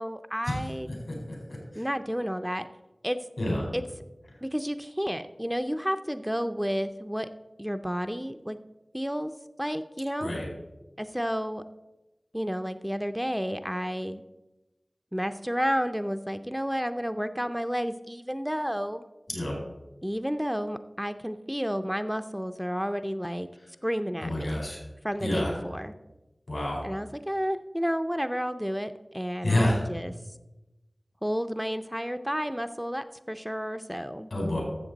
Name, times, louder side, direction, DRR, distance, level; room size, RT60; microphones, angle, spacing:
voice 1, 0.0-0.9 1.7-2.7 3.0-3.2 3.7-3.8 4.4-7.3 7.6-8.6 8.9-9.3 9.6-10.3 11.0-11.6 12.3-14.2 15.1-19.1 20.0-23.5 23.8-24.6 25.0-25.9 26.8-30.1 31.2-34.3, equal, 5° right, 9 dB, 0.5 m, -31 dB
voice 2, 19.3-19.6 24.2-24.8 25.2-25.5 26.5-26.8 29.4-29.8 34.3-34.6, left 1 dB, 90° left, -1 dB, 4.0 m, -28 dB
13.0 x 7.1 x 4.0 m, 1.0 s
wide cardioid pair, 45°, 0 cm